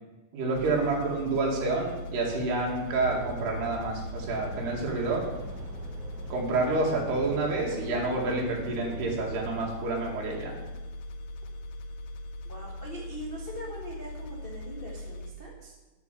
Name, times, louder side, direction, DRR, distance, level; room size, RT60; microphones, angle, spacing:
voice 1, 0.3-5.2 6.3-10.5, right 3 dB, 90° right, -2 dB, 4.4 m, -28 dB
sound 1, 0.5-15.3, left 1 dB, 85° left, 2.8 m, -40 dB
sound 2, 3.0-9.7, right 2 dB, 60° right, 2.3 m, -43 dB
voice 2, 12.4-15.8, equal, 35° left, -3 dB, 0.9 m, -41 dB
9.9 x 9.5 x 6.8 m, 1.2 s
omnidirectional pair, 4.5 m